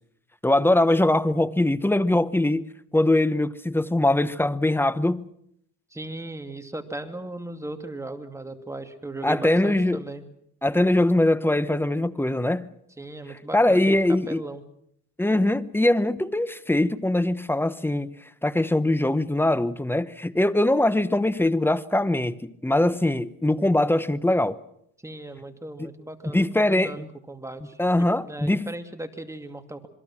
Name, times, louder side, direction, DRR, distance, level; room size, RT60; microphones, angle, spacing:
voice 1, 0.4-2.7 2.9-5.3 9.2-10.0 10.6-12.7 13.5-14.4 15.2-18.1 18.4-24.6 25.8-25.9 26.3-27.1 27.8-28.7, left 1 dB, 5° left, 1.0 m, -22 dB
voice 2, 5.9-10.2 13.0-14.6 25.0-29.9, right 2 dB, 10° right, 2.5 m, -37 dB
27.0 x 22.0 x 6.1 m
cardioid pair, 90°, 30 cm